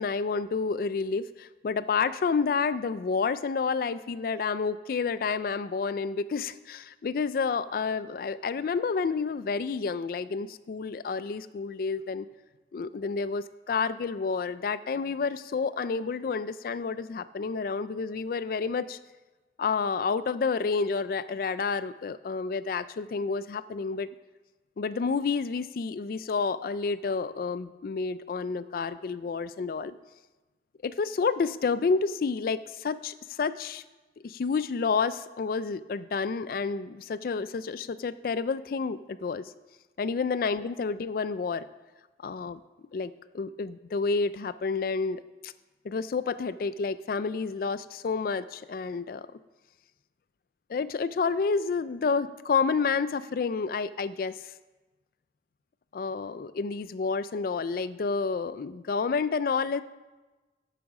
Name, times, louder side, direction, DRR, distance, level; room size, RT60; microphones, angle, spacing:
voice 1, 0.0-12.3 12.7-19.0 19.6-24.1 24.8-29.9 30.8-33.8 34.2-39.5 40.0-41.6 42.2-42.6 42.9-45.5 45.8-49.3 50.7-54.4 55.9-59.8, left 5 dB, 55° left, 15 dB, 0.3 m, -29 dB
13.5 x 5.0 x 4.8 m, 1.2 s
head